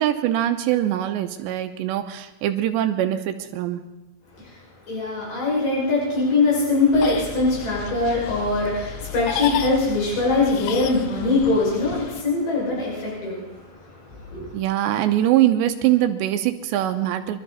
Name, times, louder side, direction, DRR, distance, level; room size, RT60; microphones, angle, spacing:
voice 1, 0.0-3.8 14.5-17.4, right 12 dB, 80° right, 7 dB, 2.9 m, -22 dB
voice 2, 4.9-14.6, left 3 dB, 45° left, -5 dB, 7.8 m, -22 dB
sound 1, 6.9-12.2, left 8 dB, 85° left, 3.4 m, -33 dB
25.5 x 13.0 x 4.2 m, 1.0 s
omnidirectional pair, 5.4 m